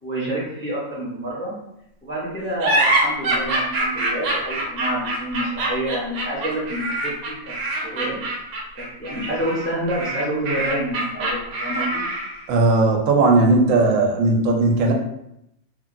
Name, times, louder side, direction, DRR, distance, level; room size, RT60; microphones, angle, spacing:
voice 1, 0.0-1.5 2.0-7.4 7.8-8.2 8.7-12.0, right 1 dB, 15° left, -6 dB, 0.4 m, -28 dB
sound 1, 2.6-12.4, right 1 dB, 65° right, 0.8 m, -24 dB
voice 2, 12.5-14.9, right 2 dB, 90° right, 1 dB, 1.0 m, -17 dB
3.1 x 2.2 x 2.5 m, 0.80 s
omnidirectional pair, 1.3 m